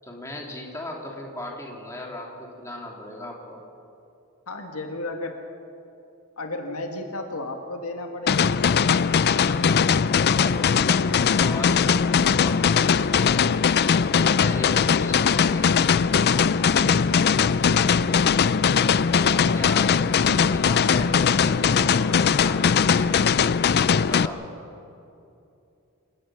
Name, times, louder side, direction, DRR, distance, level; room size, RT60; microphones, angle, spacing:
voice 1, 0.0-3.6 9.5-10.0 10.3-13.4 14.1-15.8 19.0-23.5 24.0-24.4, left 1 dB, 15° left, -1 dB, 3.0 m, -37 dB
voice 2, 4.5-5.3 6.4-8.5 16.3-16.9, left 2 dB, 70° left, 4 dB, 1.9 m, -33 dB
sound 1, 8.3-24.3, left 6 dB, 45° left, 0.4 m, -20 dB
28.5 x 17.0 x 6.3 m, 2.7 s
head